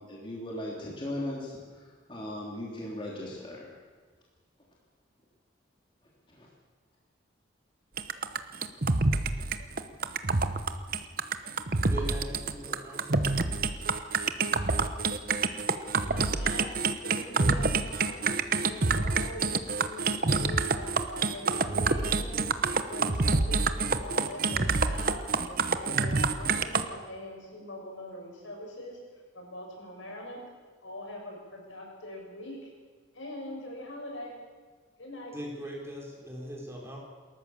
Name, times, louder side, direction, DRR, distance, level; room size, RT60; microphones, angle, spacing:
voice 1, 0.0-3.7 6.3-6.5, left 1 dB, 25° left, -4 dB, 3.3 m, -38 dB
sound 1, 8.0-26.8, right 4 dB, 45° right, 1.0 m, -27 dB
voice 2, 11.9-13.3 35.3-37.0, equal, 15° right, -2 dB, 4.5 m, -40 dB
voice 3, 15.8-18.3 18.7-29.0 29.3-30.4 30.8-32.7 33.1-34.3 35.0-35.4, left 1 dB, 80° left, -1 dB, 7.3 m, -43 dB
28.5 x 14.0 x 7.2 m, 1.5 s
head